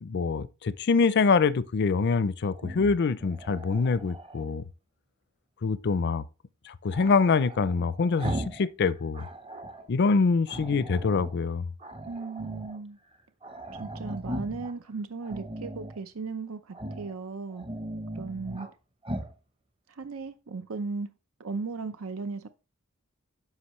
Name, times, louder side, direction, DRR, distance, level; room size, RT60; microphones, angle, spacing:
voice 1, 0.0-4.6 5.6-6.2 6.7-9.3 9.9-11.7, left 4 dB, 55° left, 0.4 m, -25 dB
Growling, 2.5-4.5 6.9-8.7 9.0-9.9 10.5-11.4 11.8-12.8 13.1-13.2 13.4-14.7 15.2-16.0 16.7-17.1 17.5-18.7 19.0-19.3, right 1 dB, 25° right, 0.8 m, -38 dB
voice 2, 12.1-13.0 13.8-17.7 18.2-18.7 19.9-21.1 21.4-22.5, right 4 dB, 85° right, 0.7 m, -36 dB
9.7 x 6.3 x 3.1 m
head